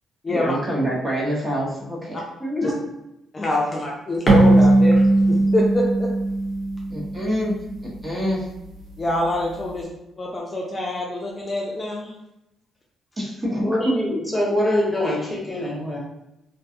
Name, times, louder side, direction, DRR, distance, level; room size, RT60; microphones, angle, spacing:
voice 1, 0.3-2.7 6.9-7.6 7.8-8.5 13.2-13.9, equal, 20° right, -4 dB, 0.8 m, -26 dB
voice 2, 3.3-5.0 5.3-6.1 9.0-9.9 10.2-12.1, left 1 dB, 30° left, -3 dB, 0.4 m, -25 dB
sound 1, 4.3-7.8, right 2 dB, 65° right, 0.9 m, -18 dB
voice 3, 13.6-16.0, left 1 dB, 10° left, -4 dB, 0.9 m, -24 dB
2.4 x 2.2 x 2.6 m, 0.87 s
cardioid pair, 90°, 0 cm